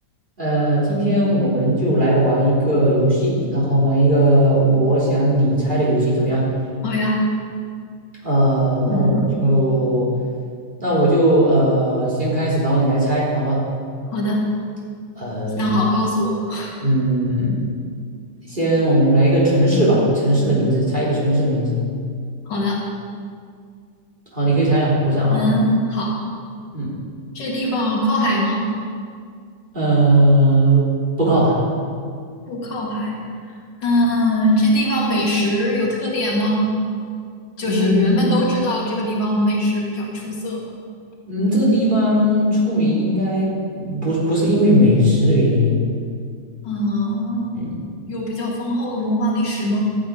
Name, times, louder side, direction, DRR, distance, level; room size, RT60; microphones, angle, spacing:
voice 1, 0.4-6.4 8.2-10.1 10.8-13.6 15.2-15.7 16.8-17.6 18.5-21.8 24.3-25.5 26.7-26.9 29.7-30.9 31.2-31.6 37.6-38.3 41.3-45.8 47.5-47.8, right 1 dB, 25° right, -6 dB, 3.6 m, -18 dB
voice 2, 6.8-7.2 8.8-9.3 14.1-14.4 15.5-16.8 22.5-22.9 25.3-26.3 27.3-28.7 32.5-33.2 33.8-36.7 37.6-40.6 46.6-47.7 48.1-49.8, left 1 dB, 65° left, -2 dB, 2.4 m, -21 dB
14.0 x 9.1 x 5.3 m, 2.2 s
omnidirectional pair, 2.1 m